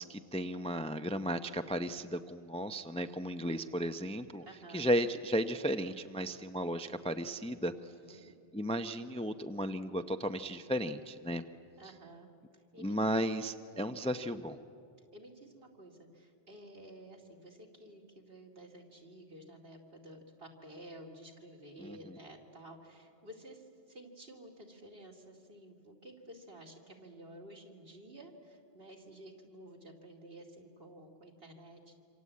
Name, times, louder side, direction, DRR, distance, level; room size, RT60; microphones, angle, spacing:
voice 1, 0.0-4.4 4.7-7.7 8.1-11.4 12.8-14.6 21.8-22.2, equal, 5° left, 8 dB, 0.5 m, -34 dB
voice 2, 4.4-4.9 7.8-8.3 11.8-12.3 12.7-12.9 13.6-13.9 15.1-32.0, right 1 dB, 65° right, 1 dB, 3.0 m, -52 dB
27.0 x 26.0 x 8.5 m, 2.6 s
omnidirectional pair, 1.1 m